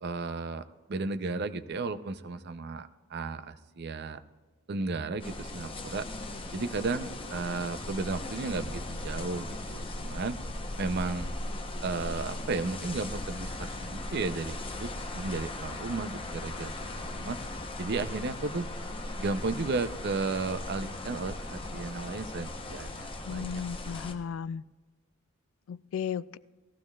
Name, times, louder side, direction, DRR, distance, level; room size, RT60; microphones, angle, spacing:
voice 1, 0.0-4.2 4.7-6.1 6.5-10.4 10.8-11.3 11.8-17.4 17.8-18.7 19.2-23.6, right 3 dB, 55° right, 11 dB, 0.5 m, -34 dB
sound 1, 5.2-24.1, left 1 dB, 25° left, 0.9 m, -38 dB
voice 2, 23.3-24.6 25.7-26.4, left 7 dB, 75° left, 18 dB, 0.3 m, -35 dB
18.5 x 15.0 x 2.4 m, 1.3 s
head